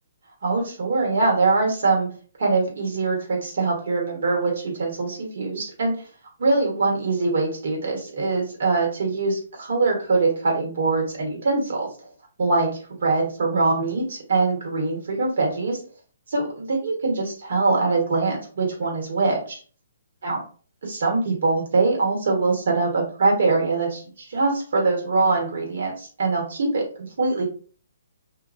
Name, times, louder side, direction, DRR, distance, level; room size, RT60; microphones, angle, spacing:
voice 1, 0.4-2.1 2.4-5.9 6.4-11.9 12.4-15.8 16.3-19.6 20.2-20.4 20.8-27.4, right 3 dB, 65° right, -1 dB, 1.3 m, -23 dB
2.6 x 2.5 x 2.4 m, 0.40 s
hypercardioid pair, 160°, 0 cm